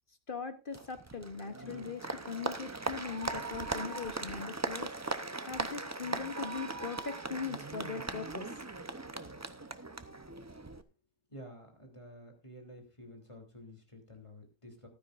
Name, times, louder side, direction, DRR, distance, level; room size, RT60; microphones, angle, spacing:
voice 1, 0.3-8.6, left 5 dB, 40° left, 9 dB, 1.0 m, -41 dB
Applause, 0.7-10.8, right 2 dB, 25° right, 0.3 m, -39 dB
voice 2, 11.3-14.9, equal, 20° left, 2 dB, 3.0 m, -51 dB
15.0 x 12.5 x 2.5 m, 0.29 s
omnidirectional pair, 1.6 m